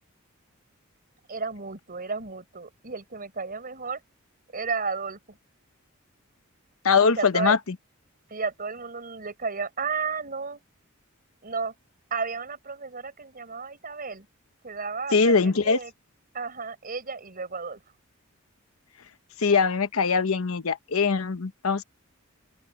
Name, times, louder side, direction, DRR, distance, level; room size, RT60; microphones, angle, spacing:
voice 1, 1.3-4.0 4.5-5.4 7.0-7.5 8.3-10.6 11.4-11.7 12.1-14.3 14.6-15.9 16.3-17.8, right 4 dB, 45° right, 4.2 m, -33 dB
voice 2, 6.8-7.6 15.1-15.8 19.4-21.8, left 5 dB, 75° left, 0.9 m, -22 dB
open air
head